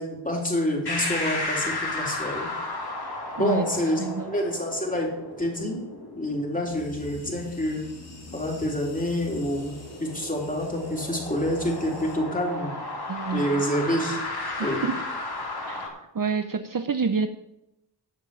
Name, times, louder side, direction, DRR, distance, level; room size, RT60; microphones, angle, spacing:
voice 1, 0.0-2.5 3.3-4.0 4.3-5.1 5.4-5.8 6.2-7.9 8.3-12.7 13.3-14.2 14.6-14.8, equal, 20° left, -1 dB, 3.5 m, -27 dB
sound 1, 0.9-15.9, left 2 dB, 55° left, 3.1 m, -34 dB
voice 2, 3.0-3.6 4.0-4.4 13.1-13.6 14.6-15.0 15.7-17.3, right 5 dB, 45° right, 9 dB, 0.8 m, -29 dB
sound 2, 6.6-12.2, left 3 dB, 35° left, 2.8 m, -45 dB
14.0 x 5.5 x 9.1 m, 0.88 s
wide cardioid pair, 100°, 45 cm